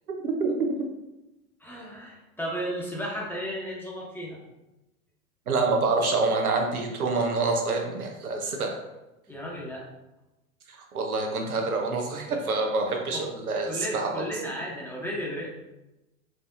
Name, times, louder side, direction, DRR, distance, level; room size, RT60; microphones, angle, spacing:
voice 1, 0.2-0.7 5.5-8.8 10.9-14.2, right 3 dB, 80° right, 2 dB, 0.8 m, -26 dB
voice 2, 1.6-4.4 9.3-9.8 13.1-13.2 13.5-15.5, equal, 5° left, -4 dB, 0.9 m, -34 dB
4.6 x 2.7 x 2.5 m, 0.99 s
figure-of-eight pair, 85°, 43 cm